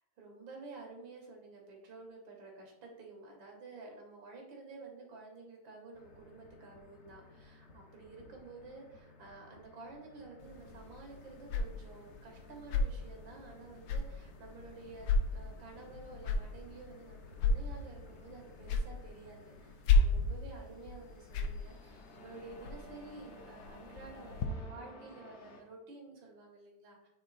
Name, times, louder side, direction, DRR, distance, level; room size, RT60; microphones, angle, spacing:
voice 1, 0.2-27.1, right 3 dB, 90° right, 0 dB, 2.0 m, -51 dB
sound 1, 5.9-25.6, left 2 dB, 50° left, 0.9 m, -57 dB
sound 2, 10.4-24.5, left 3 dB, 80° left, 1.4 m, -35 dB
7.9 x 3.2 x 4.0 m, 0.95 s
omnidirectional pair, 2.0 m